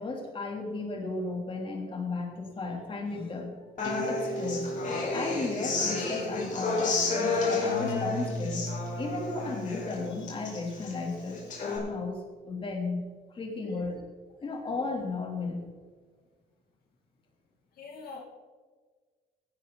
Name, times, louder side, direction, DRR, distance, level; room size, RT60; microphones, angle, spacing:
voice 1, 0.0-4.8 5.1-14.0 14.4-15.7, left 3 dB, 30° left, 1 dB, 3.3 m, -35 dB
Human voice / Acoustic guitar, 3.8-11.8, left 3 dB, 50° left, 5.0 m, -31 dB
voice 2, 13.5-13.8 17.7-18.2, left 4 dB, 65° left, 0 dB, 2.5 m, -44 dB
17.0 x 11.5 x 4.1 m, 1.5 s
cardioid pair, 110°, 17 cm